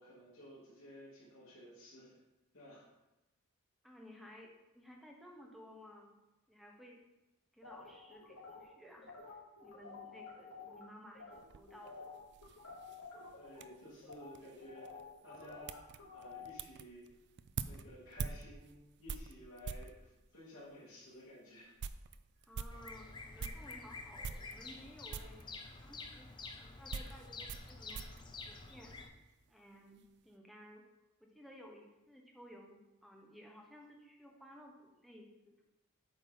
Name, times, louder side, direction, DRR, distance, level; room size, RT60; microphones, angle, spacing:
voice 1, 0.0-2.1 2.5-2.9 13.4-14.9 15.2-17.1 17.6-21.7, equal, 65° left, -9 dB, 2.8 m, -54 dB
voice 2, 3.8-6.2 6.5-7.0 7.5-12.0 22.5-25.5 25.8-26.3 26.6-28.0 28.5-29.0 29.5-30.8 31.2-35.6, equal, ahead, 0 dB, 0.8 m, -56 dB
sound 1, 7.6-10.8 11.1-11.4 11.7-16.5, left 4 dB, 80° left, 2.9 m, -51 dB
sound 2, 11.3-20.0 20.7-20.8 21.2-21.3 21.6-23.8 24.2-24.8 25.1-25.5 26.3-29.2 29.5-30.1, right 6 dB, 50° right, 0.4 m, -46 dB
Bird vocalization bird call bird song, 22.7-29.1, left 3 dB, 20° left, 0.6 m, -49 dB
8.5 x 4.0 x 5.4 m, 0.97 s
head